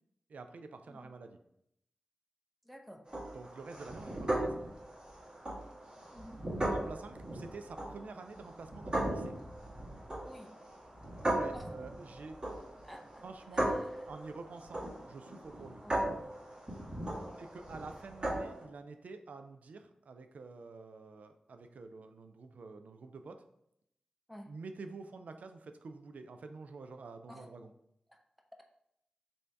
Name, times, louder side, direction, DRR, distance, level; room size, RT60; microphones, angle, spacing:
voice 1, 0.3-1.4 3.3-4.6 6.7-9.3 11.3-12.4 13.2-13.7 14.1-15.8 17.4-23.4 24.5-27.7, right 4 dB, 75° right, 7 dB, 0.3 m, -48 dB
voice 2, 2.6-3.0 6.1-6.4 10.2-10.5 11.5-11.7 12.8-13.2 13.5-14.1 15.8-16.3 17.0-17.5 24.3-24.5 27.3-27.5 28.1-28.2, equal, ahead, 3 dB, 0.7 m, -51 dB
sound 1, 3.1-18.6, right 1 dB, 35° right, 1.4 m, -38 dB
3.2 x 2.7 x 4.5 m, 0.76 s
cardioid pair, 40°, 3 cm